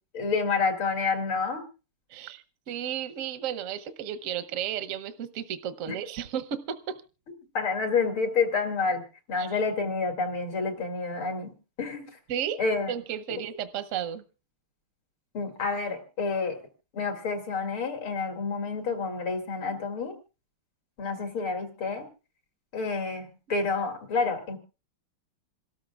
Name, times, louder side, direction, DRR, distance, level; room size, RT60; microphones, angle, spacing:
voice 1, 0.1-1.7 5.9-6.0 7.5-9.0 9.3-12.1 12.6-12.9 15.3-16.6 16.9-20.1 21.0-22.1 22.7-24.6, left 4 dB, 70° left, 3 dB, 3.1 m, -29 dB
voice 2, 2.1-7.0 9.4-9.5 12.3-12.6 12.9-14.2, right 9 dB, 60° right, 11 dB, 0.8 m, -33 dB
27.0 x 13.0 x 2.3 m, 0.32 s
omnidirectional pair, 2.4 m